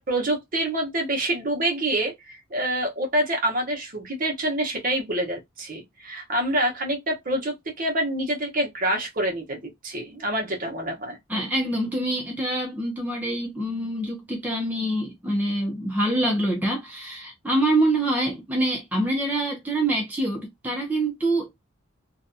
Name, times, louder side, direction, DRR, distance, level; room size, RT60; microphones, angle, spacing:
voice 1, 0.0-11.2, right 1 dB, 45° right, 0.9 m, -27 dB
voice 2, 11.3-21.5, right 1 dB, 10° right, 0.5 m, -25 dB
2.6 x 2.2 x 2.6 m
head